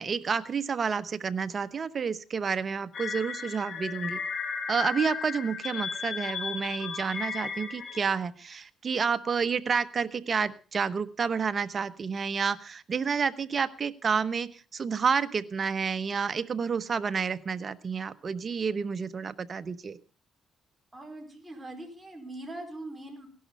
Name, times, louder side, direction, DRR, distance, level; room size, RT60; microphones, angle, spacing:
voice 1, 0.0-4.2 4.7-20.0, right 6 dB, 45° right, 12 dB, 1.0 m, -30 dB
sound 1, 2.9-8.0, left 5 dB, 55° left, 3.3 m, -35 dB
voice 2, 20.9-23.3, right 1 dB, 15° right, 3 dB, 4.9 m, -41 dB
17.5 x 11.5 x 5.4 m, 0.37 s
cardioid pair, 90°, 0 cm